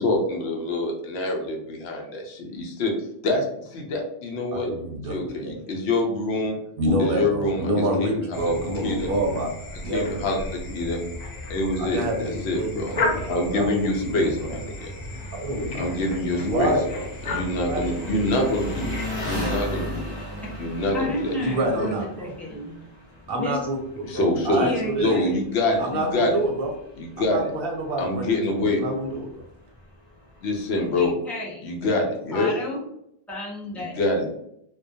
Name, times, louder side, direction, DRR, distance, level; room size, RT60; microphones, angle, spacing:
voice 1, 0.0-2.9 3.2-3.4 3.7-4.7 5.1-6.6 7.0-9.1 9.7-11.0 11.5-13.0 13.3-14.9 15.7-16.8 17.3-19.0 19.2-20.1 20.6-21.9 24.0-26.4 27.0-27.5 28.0-28.8 30.4-31.1 31.6-32.5 33.7-34.3, left 2 dB, 80° left, 1 dB, 0.9 m, -26 dB
voice 2, 4.5-5.1 5.4-5.5 6.8-9.5 9.8-10.1 11.8-14.3 15.4-15.9 16.4-17.1 17.7-18.2 21.4-22.3 23.3-23.8 24.1-25.2 25.8-26.7 27.3-29.3, right 1 dB, 65° right, 1 dB, 0.7 m, -27 dB
sound 1, 8.3-19.1, left 2 dB, 55° left, 0.5 m, -34 dB
Engine, 12.9-31.0, left 1 dB, 25° left, 0.8 m, -39 dB
voice 3, 20.9-22.7 23.3-23.6 24.5-25.4 31.0-31.6 32.3-32.8 33.3-34.0, left 1 dB, ahead, -6 dB, 0.4 m, -32 dB
2.2 x 2.1 x 2.6 m, 0.75 s
omnidirectional pair, 1.1 m